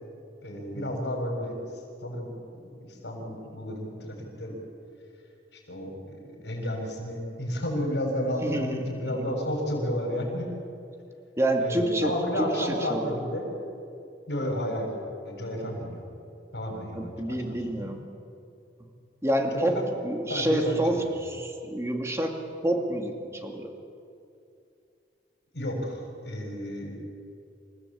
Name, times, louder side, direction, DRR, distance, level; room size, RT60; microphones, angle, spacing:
voice 1, 0.4-1.6 2.0-4.6 5.5-10.5 11.6-13.5 14.3-14.9 15.2-16.0 16.5-17.9 19.5-19.9 20.3-21.1 25.5-27.0, equal, 75° left, 1 dB, 7.1 m, -32 dB
voice 2, 8.4-9.3 11.4-13.2 16.9-18.0 18.8-18.9 19.2-22.4 22.6-23.1 23.4-23.7, right 1 dB, 15° right, 3 dB, 2.3 m, -28 dB
28.0 x 16.5 x 8.7 m, 2.6 s
head